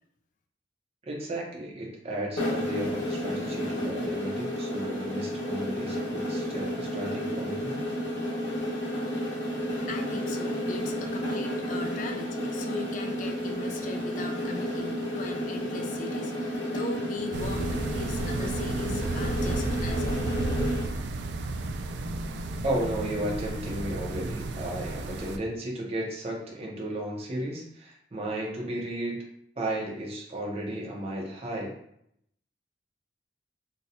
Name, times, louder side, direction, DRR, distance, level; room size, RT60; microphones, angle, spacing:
voice 1, 1.0-7.8 22.6-29.2 29.6-31.7, right 1 dB, 35° right, -2 dB, 0.8 m, -34 dB
sound 1, 2.4-20.9, equal, 85° left, 1.3 m, -31 dB
voice 2, 9.8-20.6, left 3 dB, 45° left, 4 dB, 0.3 m, -39 dB
sound 2, 17.3-25.4, right 2 dB, 70° right, 0.3 m, -33 dB
sound 3, 20.6-25.3, left 2 dB, 15° left, 0.7 m, -48 dB
4.0 x 2.2 x 2.7 m, 0.72 s
head